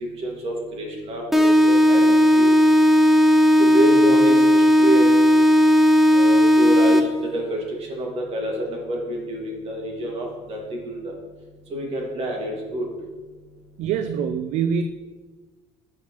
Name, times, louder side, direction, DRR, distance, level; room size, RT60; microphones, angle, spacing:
voice 1, 0.2-2.5 3.6-5.2 6.1-7.1 7.3-7.6 7.9-11.0 11.7-12.8, equal, 55° right, 0 dB, 1.8 m, -27 dB
sound 1, 1.3-7.3, equal, ahead, 0.5 m, -15 dB
voice 2, 13.8-14.8, right 7 dB, 70° right, 10 dB, 0.4 m, -24 dB
7.4 x 5.9 x 2.9 m, 1.3 s
cardioid pair, 105°, 12 cm